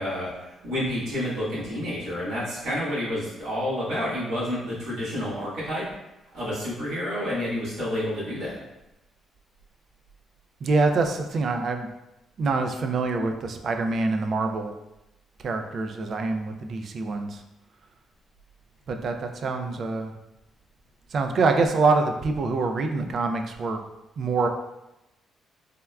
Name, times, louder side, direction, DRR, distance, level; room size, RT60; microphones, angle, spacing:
voice 1, 0.0-5.8 6.3-8.6, left 1 dB, 85° right, -9 dB, 1.5 m, -29 dB
voice 2, 10.6-11.9 12.4-14.7 15.4-17.4 18.9-20.1 21.1-23.8 24.2-24.5, right 3 dB, 55° right, 5 dB, 0.3 m, -25 dB
3.4 x 2.1 x 2.3 m, 0.93 s
cardioid pair, 90°, 0 cm